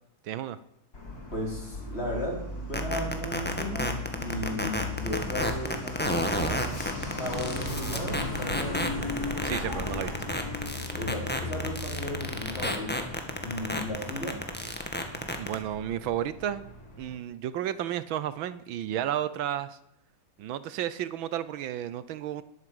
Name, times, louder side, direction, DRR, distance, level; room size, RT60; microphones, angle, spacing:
voice 1, 0.2-0.6 9.4-10.1 15.4-16.6 17.0-19.8 20.4-22.4, right 11 dB, 80° right, 15 dB, 1.5 m, -32 dB
Truck, 0.9-17.2, left 1 dB, 50° left, 4.4 m, -37 dB
voice 2, 1.3-2.4 2.7-6.6 7.2-8.8 10.9-13.1 13.4-14.4, left 1 dB, 30° left, -2 dB, 4.8 m, -35 dB
sound 1, 2.7-15.5, equal, 5° left, 1.7 m, -30 dB
20.0 x 8.7 x 7.9 m, 0.83 s
omnidirectional pair, 2.2 m